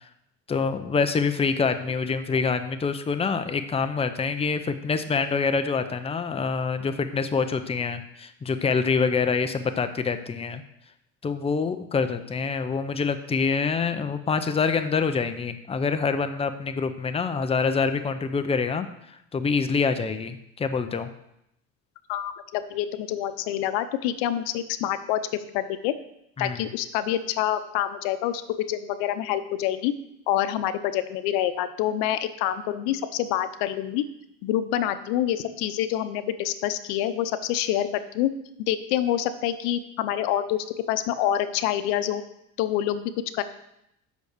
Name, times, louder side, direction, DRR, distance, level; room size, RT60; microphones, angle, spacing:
voice 1, 0.5-10.6 11.2-21.1 26.4-26.6, left 5 dB, 15° left, 9 dB, 0.7 m, -26 dB
voice 2, 22.1-25.9 26.4-29.9 30.3-34.0 34.4-37.9 38.1-38.3 38.7-42.2 42.6-43.4, left 11 dB, 90° left, 12 dB, 0.8 m, -27 dB
8.2 x 6.0 x 6.6 m, 0.79 s
cardioid pair, 120°, 34 cm